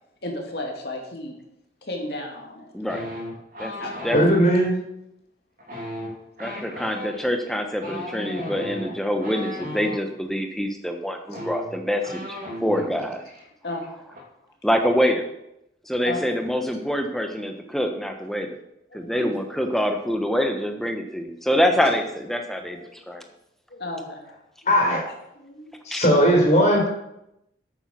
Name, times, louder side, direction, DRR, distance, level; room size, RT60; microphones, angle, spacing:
voice 1, 0.2-1.4 1.8-2.8 3.8-4.0 11.3-11.4 12.8-13.0 13.6-14.1 16.0-16.3 18.9-19.3 19.7-19.8 21.7-22.0 22.3-23.2 23.7-25.8, left 1 dB, 65° left, 1 dB, 2.5 m, -35 dB
voice 2, 2.7-3.1 3.6-3.7 4.0-4.2 6.4-13.2 14.6-15.3 15.8-18.5 18.9-23.2 25.9-26.1, equal, ahead, 5 dB, 1.1 m, -25 dB
sound 1, 2.9-4.4 5.6-10.0 10.9-11.0 11.2-12.9 13.2-13.4 13.7-14.2, left 1 dB, 50° right, 3.0 m, -35 dB
voice 3, 4.1-4.7 24.7-25.0 25.9-26.9, equal, 40° left, -1 dB, 4.1 m, -18 dB
9.0 x 8.8 x 6.2 m, 0.84 s
head